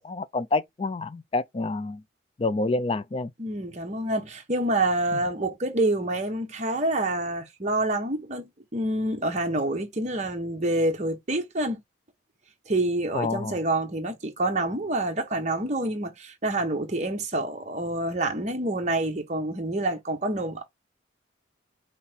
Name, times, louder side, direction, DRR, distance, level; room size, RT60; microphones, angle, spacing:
voice 1, 0.0-2.0 2.4-3.3 5.1-5.2 13.1-13.6, left 3 dB, 30° left, 0.4 m, -28 dB
voice 2, 3.4-11.8 12.7-20.6, right 2 dB, 35° right, 1.1 m, -27 dB
5.7 x 2.1 x 4.3 m
head